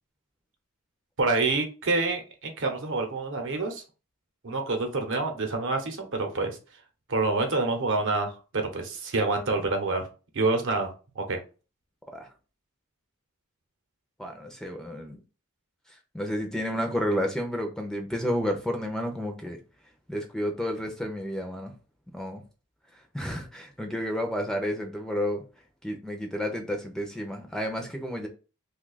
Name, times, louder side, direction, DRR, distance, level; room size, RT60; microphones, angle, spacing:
voice 1, 1.2-3.8 4.4-6.6 7.1-10.0 10.3-10.9 11.2-11.4, right 3 dB, 60° right, 0.8 m, -27 dB
voice 2, 14.2-15.2 15.9-19.6 20.1-21.7 22.1-22.4 22.9-25.4 25.8-28.3, equal, 5° left, 0.5 m, -31 dB
2.7 x 2.3 x 3.8 m
head